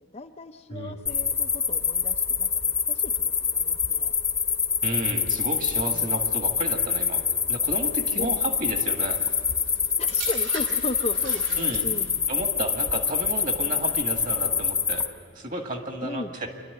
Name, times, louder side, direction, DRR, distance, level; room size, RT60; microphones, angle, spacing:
voice 1, 0.0-4.1 5.9-6.2 8.1-8.3 10.0-12.1 16.0-16.3, left 2 dB, 30° left, 6 dB, 0.5 m, -37 dB
sound 1, 1.1-15.1, left 6 dB, 15° left, 0.9 m, -26 dB
voice 2, 4.8-7.2 7.5-9.2 11.6-11.9 12.3-15.0 15.3-16.5, right 1 dB, 40° right, 4 dB, 1.8 m, -32 dB
sound 2, 9.2-12.2 13.0-13.3, right 4 dB, 65° right, 4.1 m, -40 dB
26.5 x 12.0 x 9.6 m, 2.2 s
head